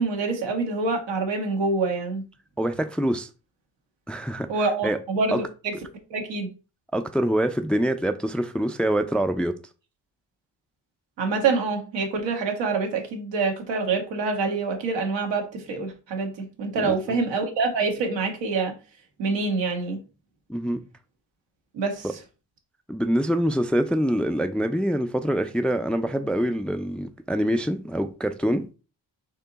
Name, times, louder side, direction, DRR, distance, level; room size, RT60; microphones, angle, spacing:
voice 1, 0.0-2.2 4.5-5.7 6.1-6.5 11.2-18.7 19.2-20.0 21.7-22.1, right 4 dB, 80° right, 1.4 m, -26 dB
voice 2, 2.6-3.3 4.1-4.5 4.8-5.0 5.3-5.4 6.9-9.6 16.8-17.1 20.5-20.8 22.0-22.1 22.9-28.7, equal, 5° left, 0.4 m, -25 dB
4.5 x 2.9 x 3.9 m
cardioid pair, 75°, 43 cm